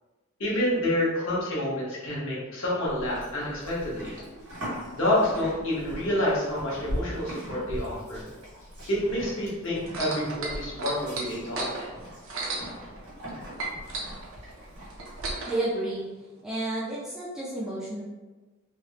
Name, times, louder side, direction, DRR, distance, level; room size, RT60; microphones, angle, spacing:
voice 1, 0.4-4.1 4.9-8.2 8.9-11.7, left 1 dB, 60° left, -7 dB, 1.0 m, -28 dB
Livestock farm animals working animals, 2.9-15.3, equal, 80° right, 1.5 m, -40 dB
sound 1, 9.9-13.3 13.6-15.6 16.4-16.5, right 3 dB, 60° right, 0.5 m, -34 dB
voice 2, 15.5-16.0 16.4-18.0, right 1 dB, ahead, -8 dB, 0.4 m, -31 dB
3.3 x 2.1 x 2.8 m, 1.2 s
head